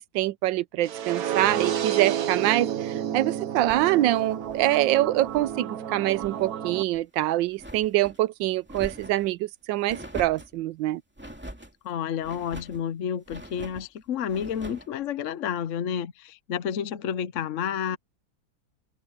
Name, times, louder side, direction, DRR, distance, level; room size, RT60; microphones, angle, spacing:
voice 1, 0.0-11.0, right 15 dB, 85° right, 1.3 m, -25 dB
sound 1, 0.8-6.8, right 9 dB, 55° right, 1.3 m, -30 dB
Fluffing A Blanket, 3.5-5.6 5.9-6.5 6.9-8.2 8.6-9.3 9.9-10.6 11.2-11.7 12.2-12.8 13.2-13.9 14.3-14.9, equal, 5° right, 2.3 m, -43 dB
voice 2, 11.8-18.0, left 8 dB, 55° left, 0.9 m, -30 dB
omnidirectional pair, 2.0 m